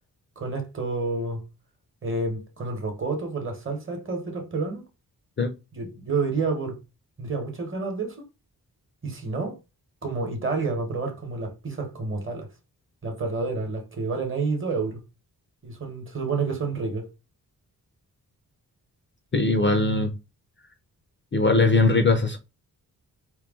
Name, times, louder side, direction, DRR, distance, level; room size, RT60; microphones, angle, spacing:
voice 1, 0.4-1.4 2.0-4.8 5.7-6.8 7.2-8.2 9.0-9.6 10.0-12.5 13.0-15.0 15.6-17.0, right 3 dB, 30° right, 1.0 m, -29 dB
voice 2, 19.3-20.1 21.3-22.4, left 3 dB, 30° left, 0.5 m, -20 dB
4.5 x 2.2 x 3.5 m
wide cardioid pair, 165°, 38 cm